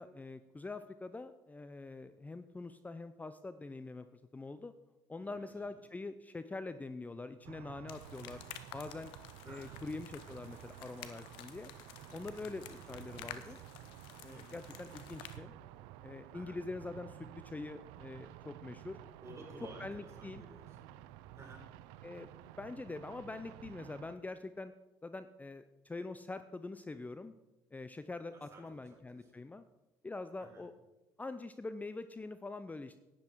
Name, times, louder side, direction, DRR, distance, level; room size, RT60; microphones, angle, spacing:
voice 1, 0.0-4.1 4.3-4.7 5.1-8.4 8.7-9.1 9.4-11.7 12.1-13.6 14.2-15.5 16.0-19.0 19.8-20.4 22.0-22.3 22.6-24.7 25.0-27.3 27.7-29.6 30.0-30.7 31.2-33.0, left 3 dB, 20° left, 12 dB, 0.6 m, -44 dB
voice 2, 5.2-5.8 9.4-10.0 12.5-13.6 14.3-14.6 16.3-16.6 18.9-21.1 21.3-21.7 28.3-29.3 30.4-30.7, right 2 dB, 35° right, 0 dB, 4.6 m, -55 dB
sound 1, 7.4-24.2, right 12 dB, 85° right, 0.4 m, -52 dB
sound 2, 7.9-15.4, left 12 dB, 80° left, 0.9 m, -52 dB
11.0 x 10.0 x 4.6 m, 1.1 s
supercardioid pair, 65°, 9 cm